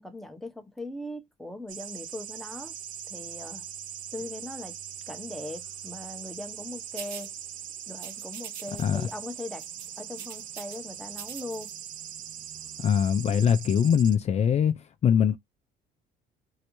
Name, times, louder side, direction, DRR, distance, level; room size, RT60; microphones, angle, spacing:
voice 1, 0.0-2.7 3.1-3.7 4.1-4.8 5.1-7.3 7.9-9.7 10.0-11.7, left 1 dB, ahead, 0.8 m, -40 dB
sound 1, 1.7-14.2, right 10 dB, 50° right, 0.4 m, -41 dB
sound 2, 7.0-7.3 8.0-8.8 9.1-9.3 9.6-10.8 11.1-11.7, right 8 dB, 75° right, 0.9 m, -42 dB
voice 2, 12.8-14.7 15.0-15.4, left 8 dB, 40° left, 0.4 m, -22 dB
3.3 x 2.7 x 3.0 m
cardioid pair, 110°, 17 cm